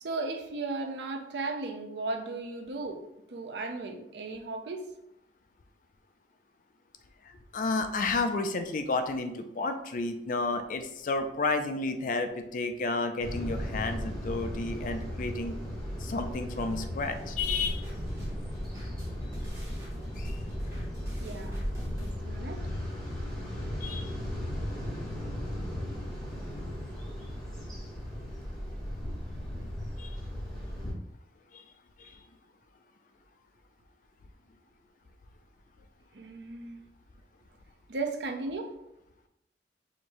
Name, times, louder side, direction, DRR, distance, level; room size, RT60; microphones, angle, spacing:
voice 1, 0.0-3.0 3.3-4.8 21.2-22.6 36.1-36.8 37.9-38.7, right 3 dB, 75° right, 5 dB, 0.5 m, -36 dB
voice 2, 7.5-15.6 16.0-17.8 20.2-20.4 23.8-24.1 30.0-30.1 31.5-31.6 32.0-32.2, left 3 dB, 45° left, 8 dB, 0.4 m, -31 dB
sound 1, 13.2-30.9, equal, 5° left, 1.3 m, -36 dB
sound 2, 16.6-22.1, equal, 15° right, 1.5 m, -43 dB
4.9 x 2.7 x 3.0 m, 0.83 s
head